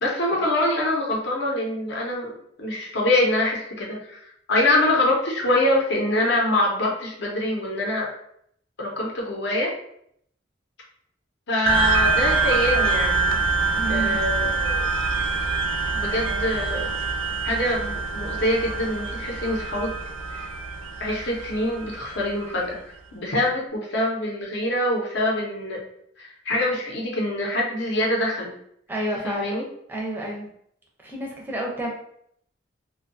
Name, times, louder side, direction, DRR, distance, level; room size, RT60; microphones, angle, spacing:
voice 1, 0.0-2.3 2.6-4.2 4.5-8.1 8.8-9.7 11.5-13.3 13.9-14.5 16.0-16.9 17.4-19.9 20.3-20.5 21.0-25.8 26.2-28.5 29.2-29.6, left 1 dB, 60° left, -2 dB, 0.7 m, -24 dB
sound 1, 11.7-22.5, right 4 dB, 85° right, 0.3 m, -25 dB
voice 2, 13.8-14.2 28.9-29.6 29.9-30.5 31.0-31.9, right 1 dB, 10° right, -2 dB, 0.5 m, -30 dB
2.6 x 2.2 x 2.5 m, 0.70 s
head